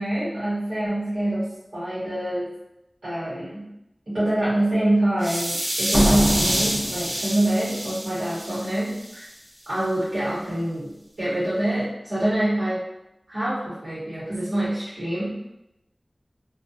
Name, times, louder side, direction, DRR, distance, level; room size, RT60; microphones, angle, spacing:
voice 1, 0.0-2.5 3.0-3.7 4.1-9.2 9.7-12.8 13.3-15.4, right 1 dB, 80° right, -10 dB, 0.9 m, -25 dB
sound 1, 5.2-9.3, equal, 45° right, 0.7 m, -28 dB
sound 2, 5.9-7.7, equal, 35° left, 0.4 m, -25 dB
2.3 x 2.2 x 2.6 m, 0.88 s
wide cardioid pair, 55°, 0 cm